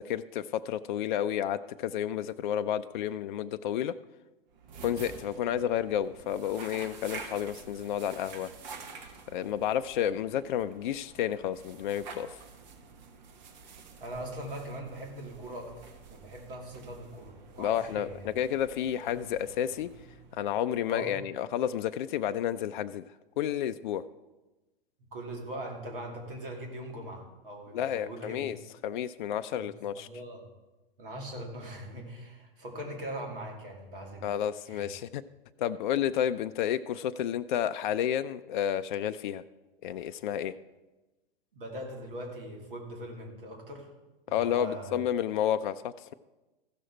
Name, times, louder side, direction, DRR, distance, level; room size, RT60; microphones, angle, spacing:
voice 1, 0.0-3.9 4.8-8.5 9.3-12.4 17.6-19.9 20.3-23.0 23.4-24.0 27.7-28.6 28.8-30.1 34.2-35.2 35.6-39.4 39.8-40.5 44.3-46.1, left 10 dB, 55° left, 11 dB, 0.4 m, -31 dB
sound 1, 4.5-20.6, right 5 dB, 50° right, 1.3 m, -49 dB
voice 2, 14.0-18.3 20.9-21.2 25.1-28.4 29.6-30.5 31.0-34.3 34.7-34.9 41.5-43.9 44.3-45.0, right 1 dB, 70° right, 1 dB, 2.6 m, -41 dB
15.0 x 6.2 x 4.4 m, 1.1 s
figure-of-eight pair, 100°, 29 cm